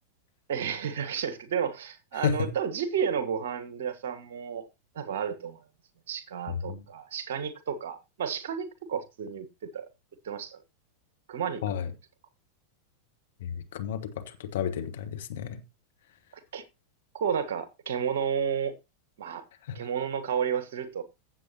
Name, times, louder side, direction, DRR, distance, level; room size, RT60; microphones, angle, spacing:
voice 1, 0.5-4.7 4.9-5.6 6.1-9.9 10.2-10.6 11.3-11.6 16.3-16.6 17.1-18.8 19.2-19.4 19.7-21.0, right 7 dB, 60° right, 1.3 m, -32 dB
voice 2, 6.5-6.8 11.6-11.9 13.4-15.6 19.6-19.9, left 8 dB, 60° left, 1.5 m, -32 dB
15.5 x 7.5 x 2.9 m
figure-of-eight pair, 90°, 0 cm